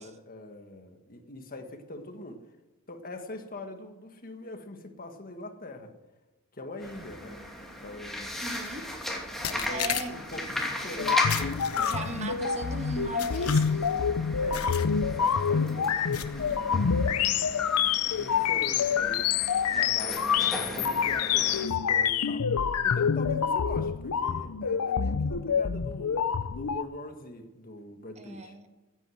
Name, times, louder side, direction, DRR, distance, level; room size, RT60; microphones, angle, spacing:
voice 1, 0.0-2.4 2.9-5.9 6.5-7.4 7.8-8.3 9.4-12.1 14.4-14.9 15.2-17.5 18.1-19.3 19.7-22.5 22.8-28.5, left 2 dB, 40° left, 6 dB, 1.6 m, -42 dB
sound 1, 6.8-21.7, left 1 dB, ahead, 2.7 m, -37 dB
voice 2, 8.4-8.9 9.7-10.3 10.6-10.9 11.8-13.9 28.2-28.7, right 2 dB, 30° right, 6 dB, 1.4 m, -38 dB
sound 2, 8.5-8.7 9.4-10.4 11.3-12.3 13.2-14.0 14.5-14.9 15.3-15.5 16.1-16.6, left 10 dB, 75° left, 1.1 m, -36 dB
sound 3, 11.0-26.8, left 7 dB, 90° left, 0.6 m, -27 dB
16.0 x 9.1 x 7.8 m, 1.1 s
head